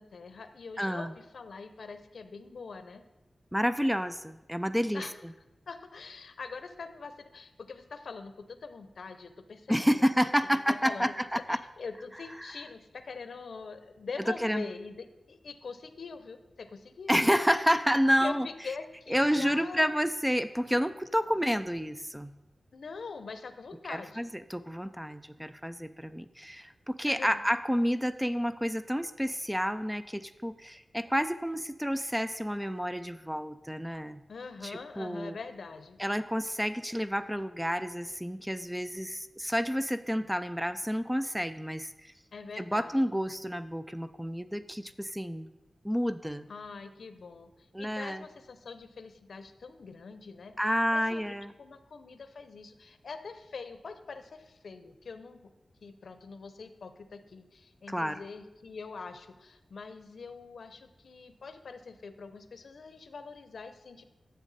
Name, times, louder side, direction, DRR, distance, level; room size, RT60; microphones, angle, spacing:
voice 1, 0.0-3.0 4.9-5.2 5.7-10.3 10.7-11.1 11.5-17.2 18.2-19.9 22.7-24.3 27.1-27.4 34.3-36.0 42.3-43.1 46.5-47.5 47.8-50.5 50.9-55.5 55.8-64.0, left 4 dB, 75° left, 10 dB, 0.7 m, -44 dB
voice 2, 0.8-1.1 3.5-5.3 9.7-11.6 12.4-12.5 14.4-14.7 17.1-18.5 19.1-22.3 23.9-34.2 34.6-35.4 36.0-42.1 42.6-45.5 45.8-46.5 47.7-48.3 50.6-51.5 57.9-58.2, equal, 5° right, 11 dB, 0.3 m, -30 dB
10.0 x 7.3 x 4.1 m, 1.0 s
wide cardioid pair, 135°, 0 cm